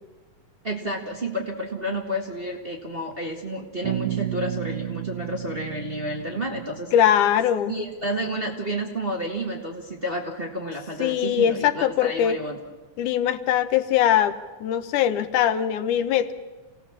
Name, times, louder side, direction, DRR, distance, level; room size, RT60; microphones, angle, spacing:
voice 1, 0.6-6.9 7.7-12.6, right 1 dB, 25° right, 0 dB, 1.5 m, -30 dB
Bass guitar, 3.8-7.5, right 12 dB, 50° right, 2.4 m, -32 dB
voice 2, 6.9-7.7 11.0-12.4 13.0-16.3, left 10 dB, 80° left, 10 dB, 2.4 m, -21 dB
27.5 x 18.0 x 7.4 m, 1.2 s
omnidirectional pair, 3.6 m